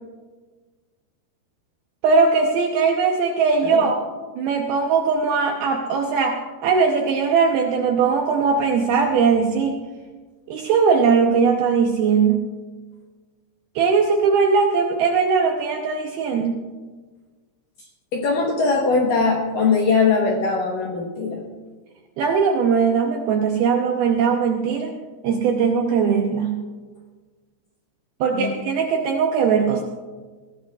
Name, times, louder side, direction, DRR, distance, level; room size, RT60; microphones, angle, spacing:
voice 1, 2.0-4.0 4.4-9.8 10.5-12.4 13.8-16.6 22.2-25.0 25.2-26.6 28.2-29.8, right 5 dB, 75° right, 2 dB, 2.3 m, -20 dB
voice 2, 17.8-21.4 28.3-28.5, left 4 dB, 70° left, -1 dB, 2.2 m, -21 dB
20.5 x 16.0 x 2.4 m, 1.4 s
omnidirectional pair, 5.4 m